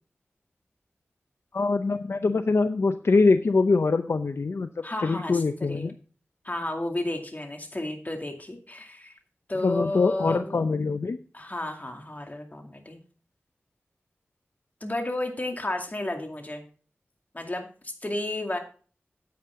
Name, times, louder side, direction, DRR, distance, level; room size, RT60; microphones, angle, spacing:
voice 1, 1.5-4.7 5.0-5.9 9.6-11.2, left 3 dB, 70° left, 9 dB, 0.5 m, -23 dB
voice 2, 4.8-5.4 5.7-5.9 6.4-9.1 9.5-10.6 11.3-13.0 14.8-16.6 17.3-18.6, left 1 dB, 40° left, 3 dB, 2.3 m, -32 dB
9.3 x 8.6 x 3.6 m, 0.40 s
wide cardioid pair, 45°, 5 cm